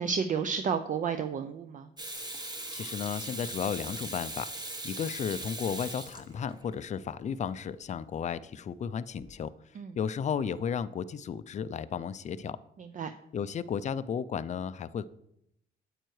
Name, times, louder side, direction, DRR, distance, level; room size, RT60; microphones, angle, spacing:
voice 1, 0.0-1.9 9.8-9.9 13.0-13.1, right 6 dB, 40° right, 9 dB, 0.4 m, -31 dB
Water tap faucet / Sink (filling or washing), 2.0-6.7 9.1-9.3, right 1 dB, 20° right, 1.1 m, -40 dB
voice 2, 2.7-4.5 4.8-9.5 10.0-12.6 13.3-15.0, left 7 dB, 35° left, 15 dB, 0.4 m, -34 dB
8.9 x 8.0 x 3.1 m, 0.80 s
cardioid pair, 90°, 20 cm